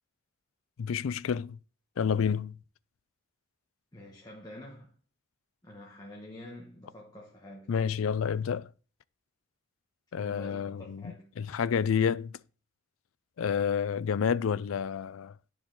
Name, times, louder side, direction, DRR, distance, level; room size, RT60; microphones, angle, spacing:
voice 1, 0.8-1.6 2.0-2.6 7.7-8.7 10.1-11.0 11.4-12.4 13.4-15.3, left 7 dB, 80° left, 0.4 m, -29 dB
voice 2, 3.9-4.9 5.6-7.7 10.2-11.3, left 1 dB, 20° left, 1.2 m, -47 dB
11.5 x 4.8 x 3.9 m
head